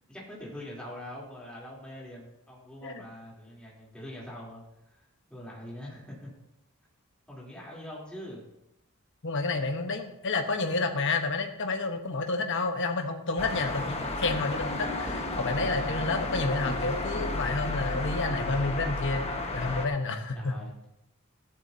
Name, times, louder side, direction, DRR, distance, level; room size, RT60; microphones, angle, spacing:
voice 1, 0.1-4.6 4.9-5.0 5.3-6.3 7.3-8.4 15.8-16.0 20.3-20.9, left 1 dB, 5° left, -5 dB, 3.4 m, -43 dB
voice 2, 9.2-20.6, left 3 dB, 60° left, 5 dB, 1.2 m, -30 dB
sound 1, 13.4-19.9, left 2 dB, 30° left, 1.4 m, -32 dB
14.0 x 12.0 x 2.8 m, 0.85 s
head